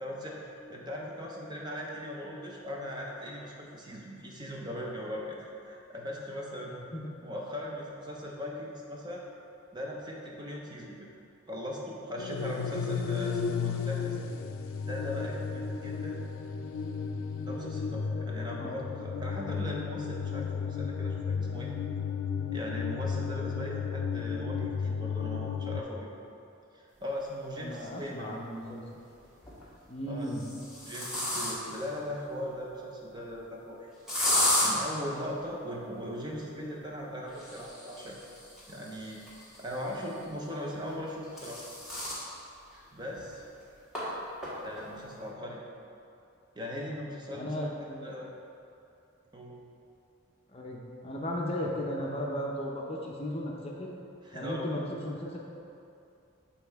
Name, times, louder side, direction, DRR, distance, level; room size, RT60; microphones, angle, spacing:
voice 1, 0.0-6.7 7.2-9.2 9.7-11.0 11.5-14.2 14.9-16.2 17.4-21.7 22.5-26.1 26.7-28.3 30.1-30.3 30.9-33.9 34.6-38.2 38.7-39.2 39.6-41.6 42.9-43.4 44.6-45.6 46.5-47.7 48.0-48.3 49.3-49.6 54.2-54.7, equal, 20° right, -2 dB, 0.6 m, -39 dB
voice 2, 6.7-7.1 18.5-18.8 27.6-28.8 29.9-30.5 47.3-48.1 50.5-53.9 54.3-55.4, equal, 30° left, -2 dB, 0.6 m, -36 dB
sound 1, 12.2-25.8, left 6 dB, 80° left, 0.4 m, -33 dB
sound 2, 27.7-27.8 29.2-29.7 30.3-31.8 34.1-34.7 37.3-39.9 40.9-42.3 42.7-42.8 43.2-43.3 43.9-44.0 44.4-44.8, left 1 dB, ahead, 1.3 m, -32 dB
7.5 x 4.2 x 3.4 m, 2.7 s
head